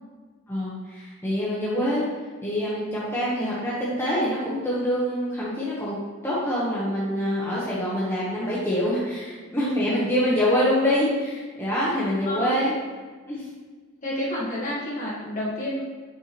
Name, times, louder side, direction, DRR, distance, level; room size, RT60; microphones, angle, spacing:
voice 1, 0.5-2.0 2.4-6.0 6.2-12.7 13.3-13.5, equal, 10° left, -8 dB, 1.0 m, -25 dB
voice 2, 12.2-12.6 14.0-15.8, left 1 dB, 35° left, -6 dB, 1.5 m, -29 dB
7.1 x 4.4 x 3.0 m, 1.4 s
head